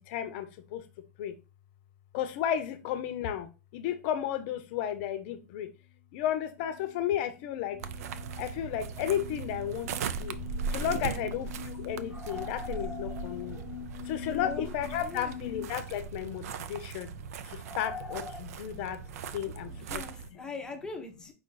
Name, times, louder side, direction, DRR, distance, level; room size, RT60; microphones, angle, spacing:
voice 1, 0.1-0.8 1.2-1.3 2.1-5.7 6.1-7.8 8.4-10.4 10.7-13.6 14.1-17.1 17.5-19.0 19.3-20.0 20.3-20.4, left 10 dB, 45° left, 0.6 m, -33 dB
sound 1, 6.5-15.6, left 11 dB, 85° left, 0.7 m, -45 dB
sound 2, 7.8-20.3, right 6 dB, 70° right, 0.4 m, -39 dB
sound 3, 9.4-9.5 9.9-10.0 10.2-10.3 12.1-14.1 14.7-14.8 16.1-16.4 17.6-18.4, left 3 dB, 10° right, 1.0 m, -44 dB
voice 2, 10.9-11.3 14.3-14.7 15.0-15.4 19.7-21.3, left 4 dB, 10° left, 0.7 m, -41 dB
5.0 x 2.4 x 3.9 m
supercardioid pair, 155°, 9 cm